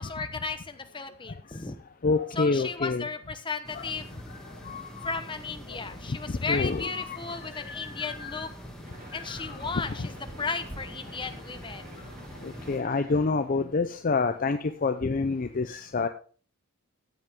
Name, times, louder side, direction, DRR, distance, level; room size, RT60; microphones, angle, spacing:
voice 1, 0.0-1.7 2.3-4.2 5.0-8.5 9.1-10.1 10.4-11.8, left 4 dB, 25° left, 8 dB, 1.0 m, -35 dB
voice 2, 2.0-3.0 3.7-3.9 4.6-5.2 6.1-6.2 6.4-8.5 9.1-9.5 9.9-10.1 12.4-16.1, left 4 dB, 40° left, 8 dB, 0.6 m, -28 dB
sound 1, 3.6-12.8, equal, 5° left, 2.3 m, -44 dB
sound 2, 8.8-13.4, equal, 40° right, 3.4 m, -49 dB
14.0 x 8.3 x 3.6 m, 0.42 s
head